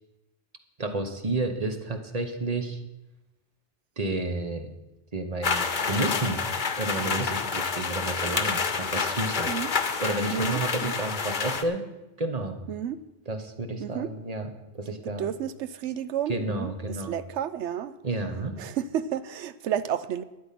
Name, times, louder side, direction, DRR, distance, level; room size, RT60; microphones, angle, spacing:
voice 1, 0.8-2.8 4.0-4.7 5.1-6.4 6.8-9.5 10.0-11.8 12.2-12.6 13.3-14.5 14.7-15.3 16.3-17.2 18.0-18.5, right 2 dB, 35° right, 6 dB, 1.2 m, -31 dB
sound 1, 5.4-11.6, left 5 dB, 45° left, 1.0 m, -28 dB
voice 2, 10.3-10.9 12.7-13.0 13.8-14.1 15.0-17.9 18.6-20.2, right 9 dB, 85° right, 14 dB, 0.9 m, -31 dB
12.0 x 9.7 x 5.9 m, 0.98 s
omnidirectional pair, 1.2 m